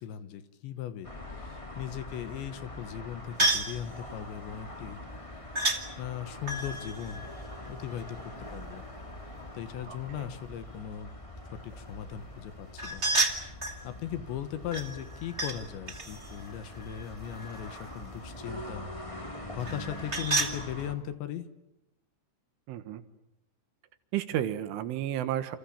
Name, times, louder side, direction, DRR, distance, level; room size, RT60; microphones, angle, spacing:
voice 1, 0.0-5.0 6.0-7.3 7.7-8.9 9.5-11.2 11.5-13.1 13.5-18.9 19.2-21.5, left 10 dB, 70° left, 12 dB, 3.4 m, -38 dB
sound 1, 1.0-20.9, left 1 dB, 50° left, 0.3 m, -44 dB
sound 2, 3.4-3.8 5.5-5.8 6.4-8.2 12.8-13.8 14.7-15.6 15.9-17.8 19.6-20.6, right 2 dB, 50° right, 0.8 m, -31 dB
voice 2, 9.9-10.3 22.7-23.0 24.1-25.6, right 11 dB, 75° right, 11 dB, 3.9 m, -32 dB
29.0 x 28.0 x 7.3 m, 0.86 s
omnidirectional pair, 5.7 m